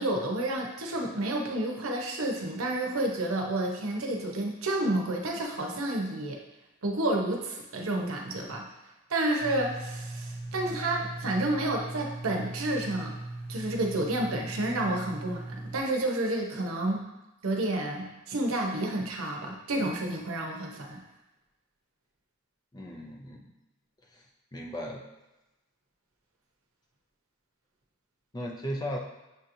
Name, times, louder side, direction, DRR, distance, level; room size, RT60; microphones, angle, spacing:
voice 1, 0.0-6.4 6.8-8.7 9.1-13.2 13.5-17.0 17.4-21.0, right 1 dB, 80° right, 1 dB, 0.8 m, -30 dB
sound 1, 9.4-15.8, right 2 dB, 35° left, 1.2 m, -39 dB
voice 2, 22.7-23.5 24.1-24.2 24.5-25.0 28.3-29.0, equal, 20° left, 0 dB, 0.5 m, -36 dB
6.7 x 2.9 x 2.6 m, 1.0 s
head